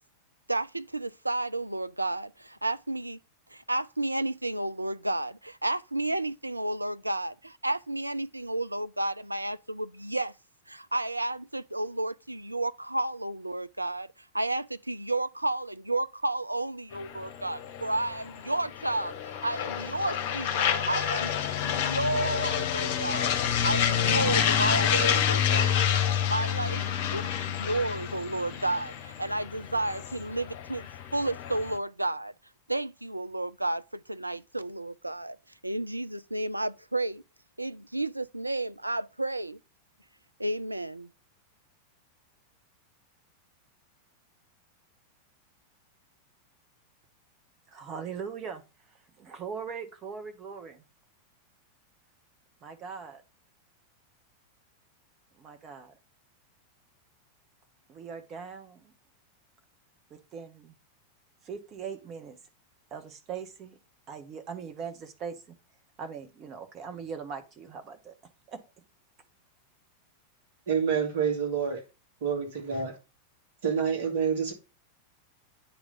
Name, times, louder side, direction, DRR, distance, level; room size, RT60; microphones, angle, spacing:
voice 1, 0.5-3.2 3.5-10.3 10.7-14.1 14.3-26.8 27.1-30.9 31.1-32.3 32.7-35.4 35.6-37.2 37.6-39.6 40.4-41.1, right 2 dB, 85° right, 0.3 m, -32 dB
sound 1, 16.9-31.8, left 9 dB, 50° left, 1.0 m, -29 dB
voice 2, 47.7-48.6 49.2-50.8 52.6-53.2 55.4-56.0 57.9-58.9 60.1-60.7 61.4-62.4 62.9-63.8 64.1-65.5 66.0-68.1 68.5-68.6, right 6 dB, 30° right, 1.4 m, -40 dB
voice 3, 70.7-71.8 72.2-72.9 73.6-74.5, right 7 dB, 55° right, 2.5 m, -27 dB
9.0 x 3.4 x 5.4 m
figure-of-eight pair, 90°, 0 cm